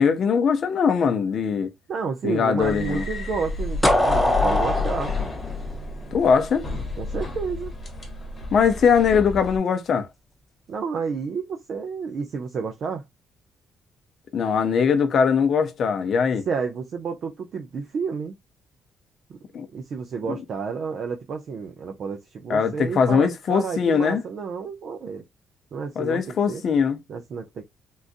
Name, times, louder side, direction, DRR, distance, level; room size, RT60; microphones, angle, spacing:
voice 1, 0.0-1.7 2.2-3.0 6.1-6.7 8.5-10.1 14.3-16.5 19.5-19.7 20.3-20.4 22.5-24.2 26.0-27.0, left 6 dB, 45° left, 0.6 m, -21 dB
voice 2, 1.9-5.1 7.0-7.7 10.7-13.0 16.5-18.3 19.3-19.4 19.7-25.2 25.7-26.6 27.1-27.6, right 5 dB, 45° right, 0.5 m, -30 dB
sound 1, 2.6-9.6, left 4 dB, 25° left, 1.1 m, -31 dB
sound 2, 3.8-6.7, left 1 dB, 5° left, 0.5 m, -22 dB
3.8 x 2.5 x 2.4 m
cardioid pair, 160°, 0 cm